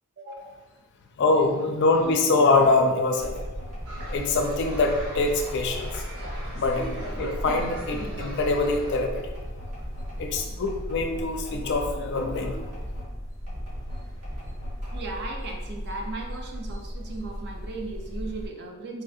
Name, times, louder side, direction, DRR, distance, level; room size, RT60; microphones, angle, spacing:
voice 1, 0.2-0.6 14.9-19.0, right 3 dB, 50° right, 1 dB, 0.5 m, -37 dB
voice 2, 1.2-3.3 4.1-6.0 6.5-9.3 10.2-12.6, left 3 dB, 50° left, 3 dB, 0.4 m, -24 dB
sound 1, 3.2-18.5, equal, 15° left, 0.7 m, -36 dB
sound 2, 3.2-13.1 13.5-15.2, equal, 90° right, 1.5 m, -42 dB
sound 3, 3.8-9.1, right 1 dB, 75° right, 0.9 m, -40 dB
4.1 x 2.3 x 2.6 m, 1.2 s
head